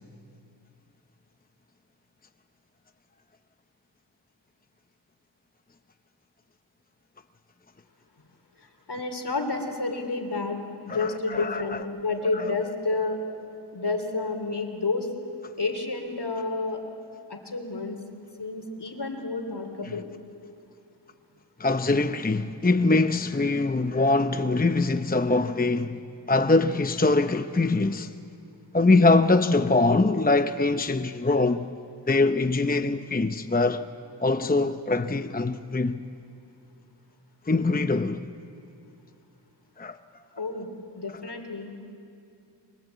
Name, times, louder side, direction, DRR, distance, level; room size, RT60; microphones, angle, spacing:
voice 1, 8.9-13.2 13.7-15.1 15.6-16.8 17.3-18.0 18.4-20.1 40.4-40.7 41.0-41.9, left 3 dB, 60° left, 3.3 m, -30 dB
voice 2, 10.9-11.8 12.3-12.5 19.8-20.0 21.6-26.0 26.3-28.1 28.7-31.7 32.1-33.8 34.2-36.1 37.5-38.2 39.8-40.0, left 3 dB, 20° left, 0.8 m, -23 dB
29.5 x 23.5 x 8.2 m
wide cardioid pair, 50°, 45 cm